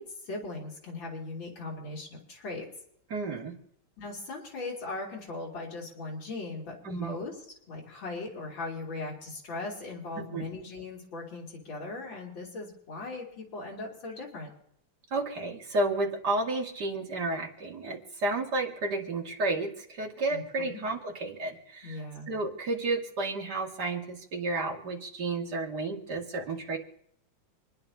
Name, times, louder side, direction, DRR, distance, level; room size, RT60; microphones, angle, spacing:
voice 1, 0.0-2.7 4.0-7.4 7.7-14.5 20.3-20.8 21.8-22.3, left 3 dB, 75° left, -2 dB, 3.7 m, -39 dB
voice 2, 3.1-3.6 6.8-7.2 10.2-10.4 15.1-22.0 22.3-26.8, right 2 dB, 55° right, 0 dB, 2.8 m, -32 dB
27.5 x 10.5 x 2.8 m, 0.73 s
omnidirectional pair, 2.1 m